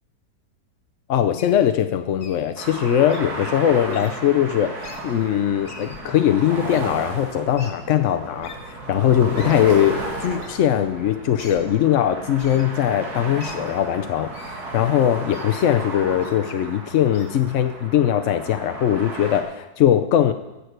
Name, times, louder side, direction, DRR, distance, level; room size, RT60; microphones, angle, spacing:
voice 1, 1.1-4.8 5.0-14.3 14.7-20.3, left 10 dB, 65° left, 9 dB, 0.8 m, -20 dB
Wild animals, 1.4-1.6 2.2-2.4 3.1-3.2 3.9-4.1 4.8-5.0 5.6-6.0 6.7-6.8 7.6-7.7 8.4-8.6 9.3-9.6 10.4-10.6 11.4-11.6 12.4-12.7 13.4-13.6 14.3-14.6 15.3-15.4 16.2-16.4 17.1-17.3, left 4 dB, 45° left, 1.9 m, -41 dB
sound 1, 2.6-19.4, right 2 dB, 65° right, 2.5 m, -34 dB
14.5 x 6.7 x 7.9 m, 1.0 s
omnidirectional pair, 1.8 m